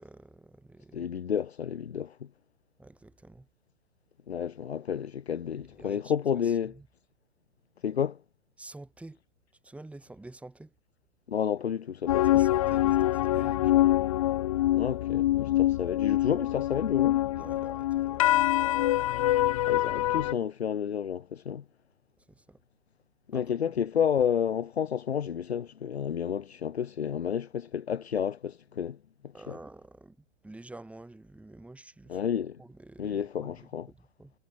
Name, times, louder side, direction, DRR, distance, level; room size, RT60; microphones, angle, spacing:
voice 1, 0.0-1.1 2.8-3.5 5.8-6.9 8.6-9.2 9.6-10.7 12.3-14.0 17.3-18.9 22.2-22.6 23.3-23.7 29.3-32.2 32.6-34.3, right 2 dB, 5° right, 7.6 m, -49 dB
voice 2, 0.9-2.3 4.3-6.7 7.8-8.2 11.3-12.4 14.7-17.2 19.7-21.6 23.3-29.0 29.5-29.6 32.1-32.6 33.0-33.9, left 8 dB, 55° left, 1.5 m, -30 dB
sound 1, 12.1-20.3, left 14 dB, 30° left, 0.6 m, -25 dB
figure-of-eight pair, 120°, 37 cm